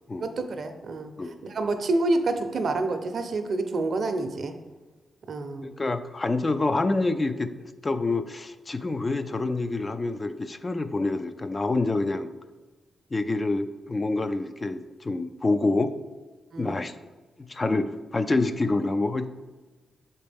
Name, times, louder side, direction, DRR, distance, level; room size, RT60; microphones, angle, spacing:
voice 1, 0.2-1.1 1.4-4.5 5.3-5.7 16.5-16.7, right 2 dB, 65° right, 7 dB, 0.6 m, -28 dB
voice 2, 5.6-12.3 13.1-15.9 16.6-16.9 17.4-19.3, left 2 dB, 35° left, 9 dB, 0.4 m, -27 dB
6.9 x 4.2 x 3.5 m, 1.2 s
supercardioid pair, 55°, 0 cm